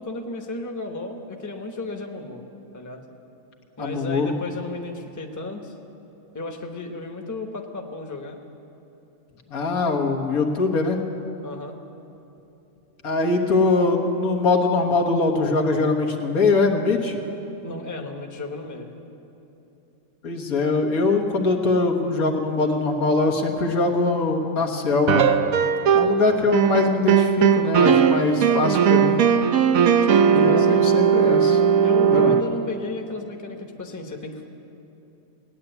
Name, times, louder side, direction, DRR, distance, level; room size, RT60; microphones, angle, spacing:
voice 1, 0.0-2.4 2.7-3.0 3.8-5.7 6.3-8.4 11.4-11.8 17.6-18.9 30.0-30.9 31.8-34.5, left 2 dB, 15° left, 3 dB, 0.9 m, -34 dB
voice 2, 3.8-4.3 9.5-11.0 13.0-17.2 20.2-25.2 25.9-29.2 30.3-31.6 32.1-32.3, left 3 dB, 90° left, 1 dB, 1.8 m, -22 dB
sound 1, 25.1-26.2 26.5-32.4, right 7 dB, 75° right, 1.1 m, -18 dB
17.5 x 9.7 x 8.0 m, 2.9 s
omnidirectional pair, 1.5 m